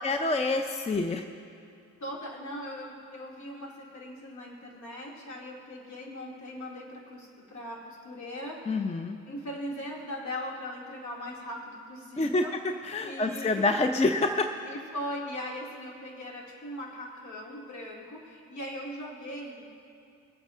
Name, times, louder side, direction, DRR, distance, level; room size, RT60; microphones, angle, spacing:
voice 1, 0.0-1.2 8.7-9.2 12.2-12.4 12.8-14.5, left 2 dB, 20° left, 6 dB, 0.6 m, -27 dB
voice 2, 2.0-8.9 9.3-12.6 13.0-13.7 14.6-19.8, equal, 55° left, -2 dB, 2.5 m, -39 dB
24.0 x 8.6 x 2.5 m, 2.5 s
hypercardioid pair, 50°, 35 cm